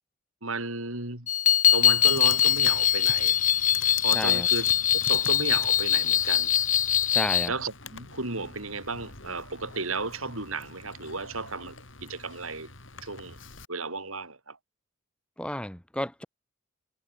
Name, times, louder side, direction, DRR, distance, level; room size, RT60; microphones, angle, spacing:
voice 1, 0.4-1.3 1.7-3.4 4.0-4.7 5.1-6.5 7.5-12.7 13.0-13.4 13.7-14.6, right 3 dB, 85° right, 7.9 m, -34 dB
sound 1, 1.3-7.5, left 10 dB, 40° left, 1.5 m, -22 dB
Computer keyboard, 1.7-13.7, left 5 dB, 65° left, 5.1 m, -44 dB
voice 2, 4.1-4.5 7.1-7.5 15.4-16.2, left 1 dB, 5° left, 1.7 m, -32 dB
head